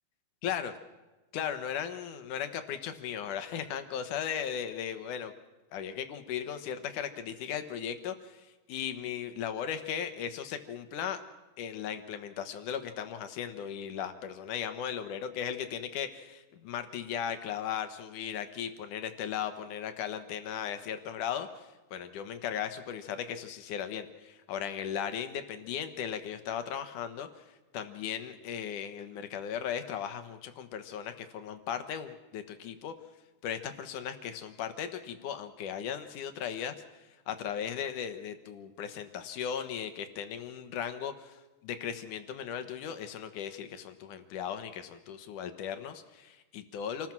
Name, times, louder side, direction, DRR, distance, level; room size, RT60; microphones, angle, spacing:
voice 1, 0.4-0.7 1.3-5.3 5.7-11.2 11.6-27.3 27.7-32.9 33.4-36.8 37.3-47.1, left 8 dB, 70° left, 9 dB, 2.7 m, -37 dB
27.5 x 19.5 x 6.1 m, 1.1 s
omnidirectional pair, 4.0 m